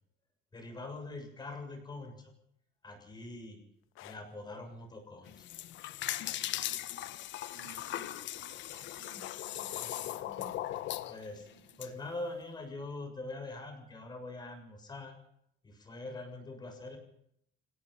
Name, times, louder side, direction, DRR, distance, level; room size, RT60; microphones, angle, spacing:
voice 1, 0.5-2.3 2.8-3.6 4.0-5.5 9.8-10.1 11.1-11.5 11.8-15.2 15.6-17.0, left 2 dB, 20° left, 7.0 m, -43 dB
sound 1, 3.8-4.2 6.2-6.5 7.8-8.2 9.2-9.5 10.9-11.1, left 16 dB, 85° left, 1.1 m, -51 dB
sound 2, 5.3-11.9, left 13 dB, 65° left, 1.4 m, -39 dB
voice 2, 7.5-10.8 11.3-11.8, right 4 dB, 55° right, 6.4 m, -58 dB
28.0 x 17.5 x 5.8 m
cardioid pair, 145°, 20 cm